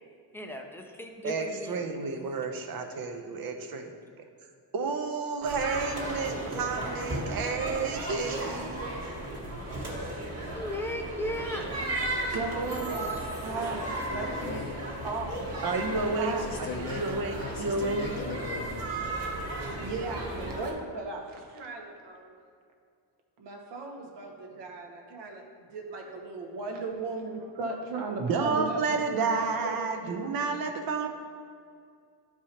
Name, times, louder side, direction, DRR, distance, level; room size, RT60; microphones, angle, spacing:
voice 1, 0.3-1.8 10.5-12.1, left 1 dB, 5° left, 2 dB, 0.5 m, -36 dB
voice 2, 1.2-3.9 4.7-8.8 15.6-16.3 16.6-18.0 28.2-31.1, right 4 dB, 55° right, 5 dB, 0.8 m, -31 dB
sound 1, 5.4-20.7, right 1 dB, 35° right, 1.6 m, -35 dB
voice 3, 12.3-14.6 15.0-15.4 16.2-16.6 19.8-22.3 23.4-28.8 29.1-29.2 29.6-29.8 30.0-30.4, right 3 dB, 70° right, 1 dB, 1.2 m, -36 dB
voice 4, 13.2-13.7 14.1-15.0 16.4-19.9, left 4 dB, 50° left, 0 dB, 0.7 m, -41 dB
11.5 x 4.7 x 2.9 m, 2.2 s
cardioid pair, 145°, 43 cm